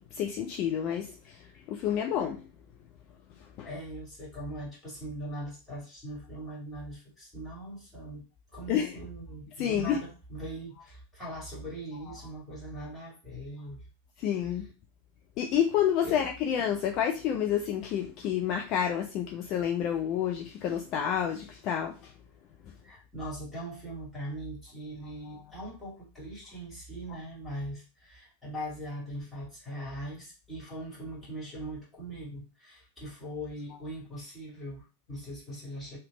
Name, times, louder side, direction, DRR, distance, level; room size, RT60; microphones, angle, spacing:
voice 1, 0.0-1.4 1.7-2.4 3.6-3.7 8.7-9.0 9.6-10.0 12.1-12.2 14.2-14.7 15.4-22.0, left 9 dB, 40° left, 0.5 m, -29 dB
voice 2, 3.6-8.2 8.5-13.8 16.0-16.2 22.8-36.0, right 1 dB, 5° left, 2.3 m, -40 dB
3.4 x 2.9 x 3.7 m
figure-of-eight pair, 90°, 0 cm